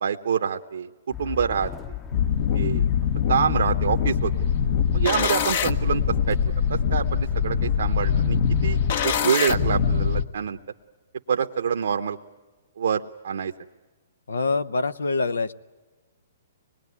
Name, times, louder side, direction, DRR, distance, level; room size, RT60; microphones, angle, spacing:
voice 1, 0.0-2.0 2.5-2.9 3.3-4.3 4.9-6.0 6.3-6.4 6.7-8.4 8.6-10.6 11.3-12.2 12.8-13.5, right 7 dB, 75° right, 5 dB, 0.9 m, -26 dB
sound 1, 1.1-9.3, left 9 dB, 20° left, 0.8 m, -37 dB
sound 2, 2.1-10.2, left 7 dB, 55° left, 1.0 m, -23 dB
voice 2, 14.3-15.5, left 3 dB, 90° left, 14 dB, 0.8 m, -25 dB
25.0 x 20.5 x 9.7 m, 1.3 s
hypercardioid pair, 135°, 0 cm